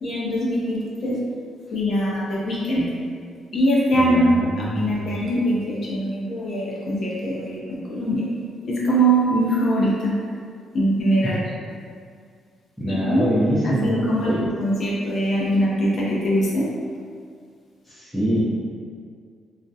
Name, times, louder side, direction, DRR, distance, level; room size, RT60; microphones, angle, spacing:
voice 1, 0.0-1.2 1.7-2.9 3.5-4.3 4.6-8.2 8.6-10.1 10.7-11.4 12.9-13.3 13.6-16.7, right 1 dB, 55° left, -6 dB, 0.5 m, -22 dB
voice 2, 3.9-5.2 12.8-13.9 14.2-14.4 17.9-18.5, right 1 dB, ahead, -12 dB, 0.6 m, -24 dB
2.3 x 2.1 x 2.7 m, 2.2 s
cardioid pair, 90°, 0 cm